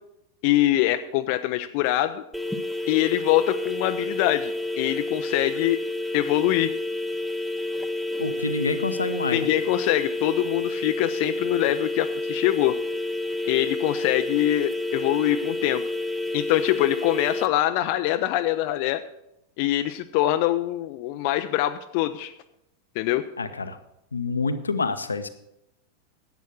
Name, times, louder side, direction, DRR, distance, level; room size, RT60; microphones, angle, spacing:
voice 1, 0.4-2.2 2.9-5.8 6.1-6.7 9.3-12.8 13.5-15.8 16.3-19.0 19.6-22.3 23.0-23.2, left 14 dB, 45° left, 9 dB, 0.5 m, -24 dB
sound 1, 2.3-17.5, left 2 dB, ahead, 0.8 m, -29 dB
voice 2, 8.2-9.5 23.4-23.8 24.1-25.3, left 3 dB, 75° left, 10 dB, 0.8 m, -27 dB
10.5 x 8.2 x 6.2 m, 0.84 s
figure-of-eight pair, 90°, 0 cm